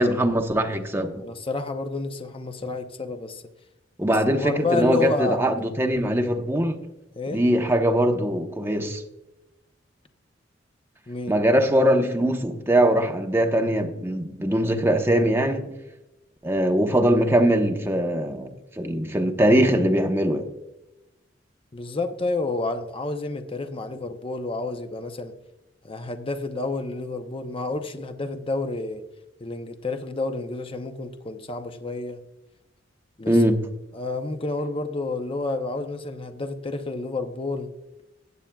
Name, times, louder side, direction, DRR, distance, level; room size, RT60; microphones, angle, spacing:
voice 1, 0.0-1.2 4.0-6.8 7.3-9.0 11.3-15.7 16.4-20.5 33.3-33.6, right 1 dB, 15° right, 1.0 m, -21 dB
voice 2, 1.2-3.4 4.0-5.4 7.2-7.4 11.1-11.4 21.7-25.3 25.8-29.0 29.4-32.2 33.2-33.4 33.9-37.7, left 3 dB, 30° left, 0.7 m, -30 dB
16.0 x 8.4 x 2.3 m
head